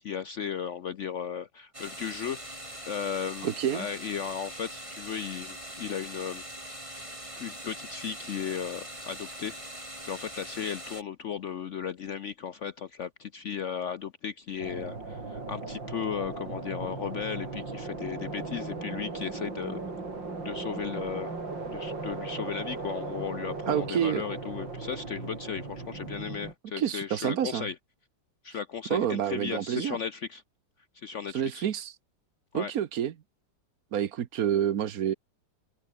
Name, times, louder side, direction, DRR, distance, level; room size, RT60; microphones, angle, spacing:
voice 1, 0.0-2.6 2.9-6.4 7.4-9.6 10.0-19.8 20.4-21.4 21.7-27.7 28.4-30.4 30.9-31.7 32.5-32.7, left 7 dB, 65° left, 0.7 m, -36 dB
sound 1, 1.7-11.0, right 1 dB, 15° right, 7.1 m, -42 dB
voice 2, 3.4-3.9 23.7-24.2 26.8-27.7 28.9-30.0 31.3-31.9 32.5-33.1 33.9-35.1, right 9 dB, 55° right, 1.3 m, -28 dB
sound 2, 14.6-26.5, right 3 dB, 80° right, 5.4 m, -37 dB
omnidirectional pair, 2.0 m